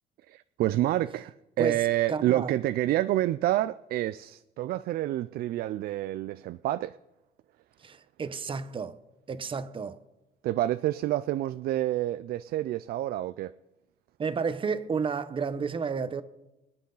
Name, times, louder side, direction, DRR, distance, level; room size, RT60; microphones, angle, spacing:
voice 1, 0.3-7.0 10.4-13.5, right 14 dB, 65° right, 0.4 m, -28 dB
voice 2, 2.1-2.5 7.8-9.0 9.3-10.0 14.2-16.2, right 5 dB, 30° right, 0.9 m, -31 dB
25.0 x 9.0 x 3.9 m
cardioid pair, 110°, 17 cm